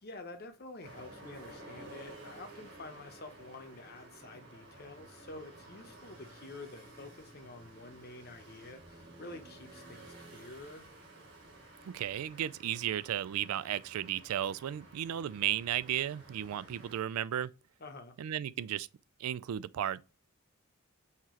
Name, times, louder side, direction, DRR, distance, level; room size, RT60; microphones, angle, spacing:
voice 1, 0.0-10.9 17.8-18.2, left 2 dB, 45° left, 0.9 m, -49 dB
sound 1, 0.8-17.0, right 2 dB, 50° right, 1.9 m, -53 dB
voice 2, 11.8-17.5 18.2-18.9 19.2-20.0, right 11 dB, 85° right, 0.3 m, -34 dB
5.7 x 2.9 x 3.1 m
head